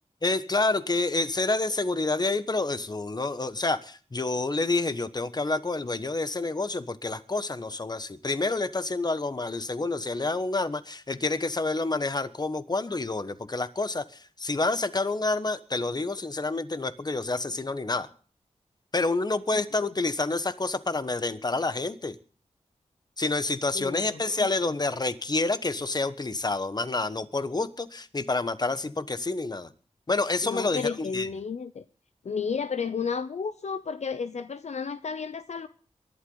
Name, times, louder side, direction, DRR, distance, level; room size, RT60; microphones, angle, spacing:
voice 1, 0.2-18.1 18.9-22.2 23.2-29.7 30.1-31.3, left 3 dB, 35° left, 1.2 m, -28 dB
voice 2, 23.7-24.5 30.4-31.8 32.2-35.7, left 5 dB, 70° left, 0.7 m, -32 dB
23.5 x 11.5 x 4.0 m
cardioid pair, 60°, 12 cm